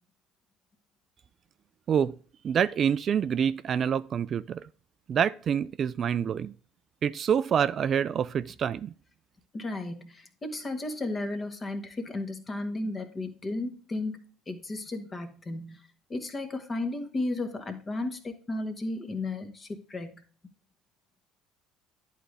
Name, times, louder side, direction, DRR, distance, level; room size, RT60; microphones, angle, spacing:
voice 1, 2.4-4.6 5.1-6.5 7.0-8.9, right 8 dB, 45° right, 0.3 m, -26 dB
voice 2, 9.5-15.8 16.1-20.2, left 2 dB, 30° left, 1.5 m, -34 dB
11.0 x 3.9 x 3.2 m
hypercardioid pair, 65°, 0 cm